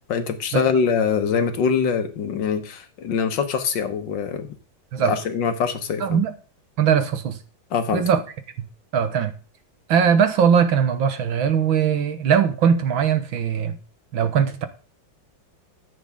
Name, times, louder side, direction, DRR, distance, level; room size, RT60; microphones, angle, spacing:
voice 1, 0.1-4.5 5.0-6.2 7.7-8.0, left 6 dB, 65° left, 1.8 m, -23 dB
voice 2, 6.0-6.3 6.8-7.4 7.9-8.2 8.9-9.3 9.9-13.8 14.1-14.7, right 7 dB, 75° right, 1.9 m, -20 dB
14.0 x 8.0 x 3.6 m
omnidirectional pair, 2.2 m